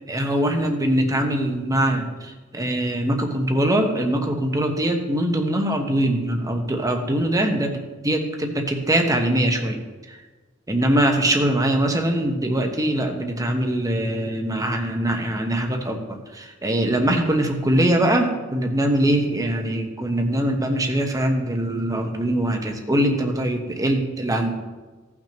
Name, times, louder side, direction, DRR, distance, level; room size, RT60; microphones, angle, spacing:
voice 1, 0.1-9.8 10.1-10.2 10.7-16.0 16.3-24.5, right 1 dB, 15° right, 3 dB, 1.1 m, -22 dB
16.5 x 6.1 x 3.0 m, 1.3 s
head